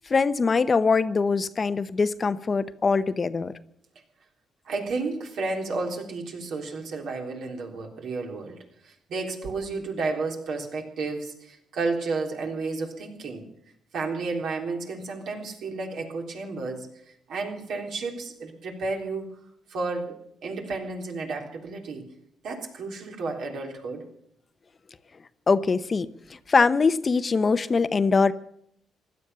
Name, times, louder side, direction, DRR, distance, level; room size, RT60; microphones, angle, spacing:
voice 1, 0.1-3.6 25.5-28.3, left 4 dB, 35° left, 0.8 m, -23 dB
voice 2, 4.6-8.6 8.8-13.4 13.9-19.3 19.7-20.2 20.4-22.0 22.4-24.1, right 3 dB, 70° right, 3.6 m, -32 dB
16.0 x 12.0 x 6.9 m
cardioid pair, 90°, 0 cm